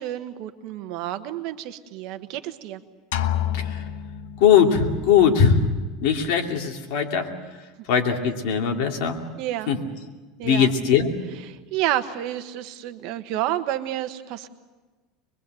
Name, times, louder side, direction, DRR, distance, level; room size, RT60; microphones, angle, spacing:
voice 1, 0.0-2.8 9.4-9.7 10.4-10.7 11.5-14.5, right 13 dB, 55° right, 10 dB, 1.2 m, -30 dB
sound 1, 3.1-5.0, left 10 dB, 80° left, 1.1 m, -28 dB
voice 2, 4.4-5.6 6.0-7.3 7.9-9.2 9.7-9.8 10.4-11.1, left 7 dB, 60° left, 3 dB, 2.6 m, -20 dB
23.5 x 22.5 x 7.8 m, 1.3 s
supercardioid pair, 160°, 0 cm